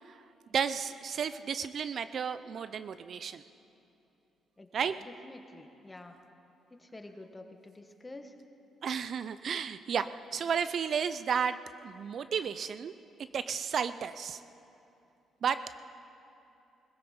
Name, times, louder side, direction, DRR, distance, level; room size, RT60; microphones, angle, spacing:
voice 1, 0.5-3.4 4.7-4.9 8.8-12.9 13.3-14.4 15.4-15.6, right 7 dB, 55° right, 13 dB, 0.4 m, -33 dB
voice 2, 4.6-6.2 6.8-8.3, left 2 dB, 20° left, 6 dB, 1.3 m, -49 dB
21.0 x 15.0 x 4.3 m, 2.8 s
cardioid pair, 90°, 0 cm